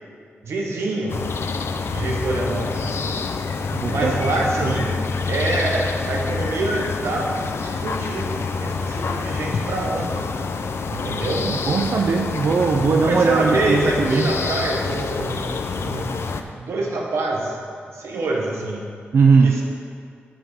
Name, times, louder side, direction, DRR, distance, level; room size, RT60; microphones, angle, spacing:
voice 1, 0.4-1.2 1.9-3.0 3.9-4.9 5.3-7.3 7.6-10.3 10.9-11.5 12.9-16.1 16.4-17.6 17.9-18.9 19.4-19.6, right 2 dB, 85° right, -1 dB, 1.1 m, -26 dB
sound 1, 1.1-16.4, left 4 dB, 70° left, 0.5 m, -27 dB
voice 2, 3.7-4.1 4.4-4.8 11.3-14.3 19.1-19.6, right 4 dB, 65° right, 2 dB, 0.5 m, -19 dB
7.2 x 5.7 x 4.9 m, 2.3 s
cardioid pair, 50°, 4 cm